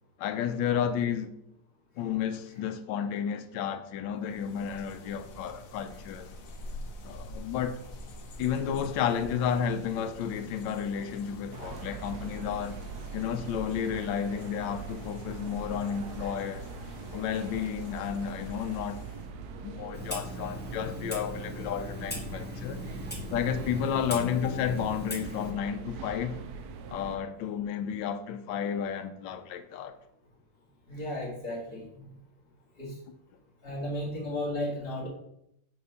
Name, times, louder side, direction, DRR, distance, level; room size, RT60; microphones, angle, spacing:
voice 1, 0.2-1.3 2.0-6.3 7.0-7.8 8.4-12.8 13.1-16.7 17.1-19.0 19.6-22.8 23.3-26.4 26.9-30.0, left 8 dB, 90° left, 1.3 m, -32 dB
sound 1, 4.2-19.3, left 1 dB, 60° left, 1.0 m, -46 dB
sound 2, 11.5-27.2, right 4 dB, 70° right, 1.1 m, -42 dB
Clock, 19.9-25.5, left 1 dB, 10° left, 0.7 m, -39 dB
voice 2, 30.9-32.1 32.8-33.0 33.6-35.1, left 1 dB, 30° left, 2.1 m, -34 dB
6.0 x 3.1 x 5.5 m
omnidirectional pair, 1.9 m